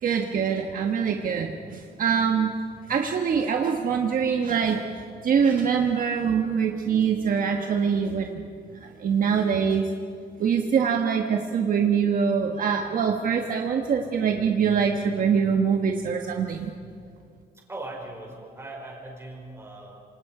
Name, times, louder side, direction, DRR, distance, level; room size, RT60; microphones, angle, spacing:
voice 1, 0.0-2.5 2.9-8.5 8.8-9.9 10.4-16.7, right 6 dB, 55° right, 3 dB, 1.4 m, -24 dB
voice 2, 17.5-20.0, right 2 dB, 15° right, -1 dB, 5.3 m, -39 dB
27.0 x 27.0 x 5.0 m, 2.3 s
cardioid pair, 165°, 17 cm